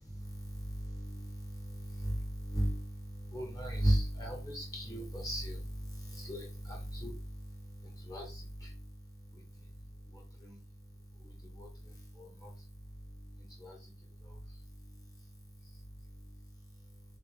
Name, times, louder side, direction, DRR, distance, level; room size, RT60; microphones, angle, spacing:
voice 1, 0.1-2.9 3.3-7.1 8.0-8.7 10.4-10.6 11.6-11.7 12.2-12.5 13.6-13.8, right 1 dB, 20° left, 0.9 m, -36 dB
3.5 x 2.3 x 3.1 m
head